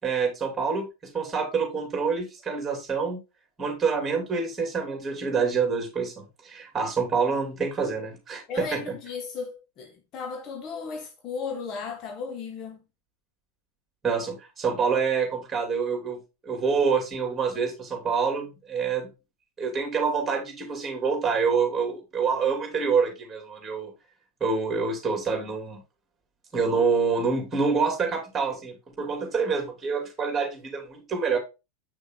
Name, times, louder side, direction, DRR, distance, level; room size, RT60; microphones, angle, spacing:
voice 1, 0.0-3.2 3.6-6.1 6.4-8.8 14.0-19.1 19.6-23.9 24.4-25.8 26.5-31.4, right 5 dB, 15° right, 3.2 m, -27 dB
voice 2, 8.5-12.8, left 5 dB, 35° left, 1.1 m, -35 dB
7.8 x 6.2 x 2.2 m
figure-of-eight pair, 90°, 0 cm